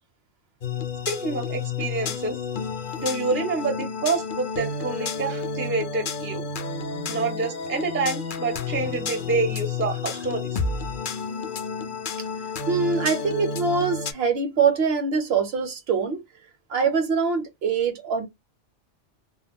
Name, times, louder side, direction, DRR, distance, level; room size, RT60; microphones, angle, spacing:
sound 1, 0.6-14.1, left 4 dB, 60° left, 0.6 m, -30 dB
voice 1, 1.1-2.4 3.0-6.4 7.1-10.6, right 3 dB, 20° right, 0.3 m, -27 dB
voice 2, 12.7-16.2 16.7-18.3, right 5 dB, 65° right, 0.8 m, -23 dB
2.2 x 2.1 x 3.4 m
omnidirectional pair, 1.2 m